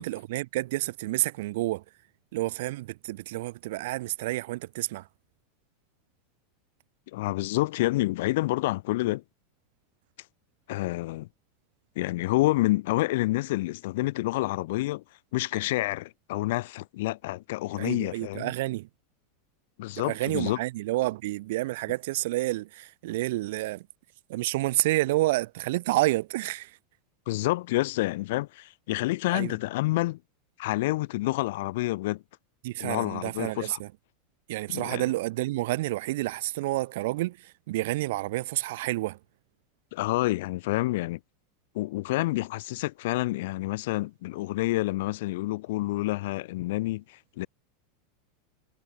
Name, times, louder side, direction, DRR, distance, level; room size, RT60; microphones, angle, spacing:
voice 1, 0.0-1.8 2.3-5.0 17.7-18.9 20.0-23.8 24.3-26.7 29.3-29.5 32.6-33.9 34.5-37.4 37.7-39.2, right 18 dB, 70° right, 0.5 m, -29 dB
voice 2, 7.1-9.2 10.7-11.3 12.0-15.0 15.3-18.5 19.8-20.6 27.3-30.2 30.6-32.2 32.8-33.8 34.7-35.0 39.9-41.2 41.7-47.5, left 19 dB, 70° left, 0.5 m, -28 dB
supercardioid pair, 120°, 0 cm